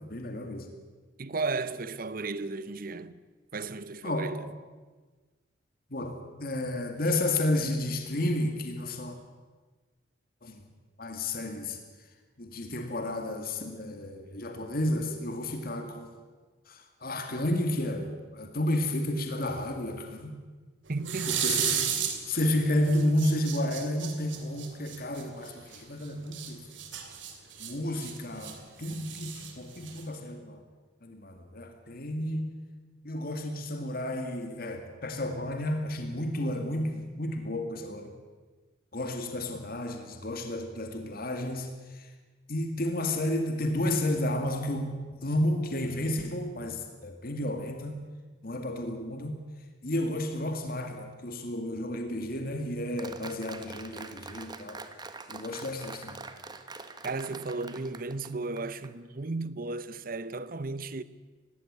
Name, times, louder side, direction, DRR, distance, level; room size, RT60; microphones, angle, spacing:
voice 1, 0.1-0.7 4.0-4.4 5.9-9.2 10.4-10.6 11.0-11.8 12.4-16.1 16.7-20.3 21.2-21.9 22.3-26.6 27.6-30.6 31.0-32.5 33.0-38.1 38.9-42.1 42.5-48.0 48.4-49.4 49.8-54.8 55.3-56.2, left 1 dB, 50° left, 2.3 m, -31 dB
voice 2, 1.2-3.2 3.5-4.5 20.9-21.4 57.0-61.0, right 3 dB, 50° right, 0.9 m, -34 dB
sound 1, 21.0-22.5 22.8-25.8 26.3-28.5 28.8-30.2, right 8 dB, 80° right, 3.0 m, -33 dB
Applause, 53.0-58.9, right 3 dB, 20° right, 1.2 m, -44 dB
19.0 x 16.5 x 9.6 m
head